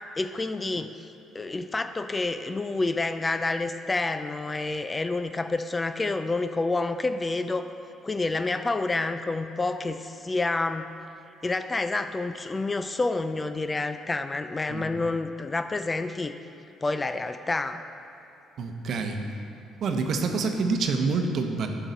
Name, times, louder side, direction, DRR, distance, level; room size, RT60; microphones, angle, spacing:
voice 1, 0.2-7.7 8.0-10.9 11.4-16.4 16.8-17.8, left 3 dB, 20° left, 9 dB, 0.4 m, -28 dB
voice 2, 18.6-19.2 19.8-21.7, right 4 dB, 60° right, 4 dB, 0.8 m, -27 dB
11.0 x 6.1 x 4.0 m, 2.8 s
cardioid pair, 95°, 0 cm